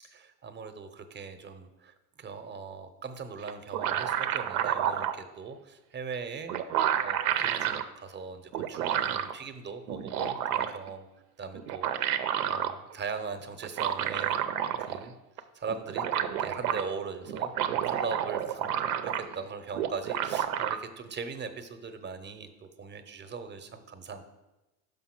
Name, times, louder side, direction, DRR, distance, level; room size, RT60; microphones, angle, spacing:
voice 1, 0.0-6.5 7.0-11.1 11.4-14.4 14.8-15.1 15.5-24.2, right 5 dB, 25° right, 8 dB, 0.7 m, -40 dB
sound 1, 3.5-5.2 6.1-6.2 6.5-7.8 8.5-9.3 9.9-10.9 11.5-12.7 13.6-15.1 15.4-15.5 15.7-16.8 17.3-19.4 19.7-20.8, right 10 dB, 85° right, 0.7 m, -30 dB
5.8 x 5.3 x 5.9 m, 1.0 s
supercardioid pair, 110°, 45 cm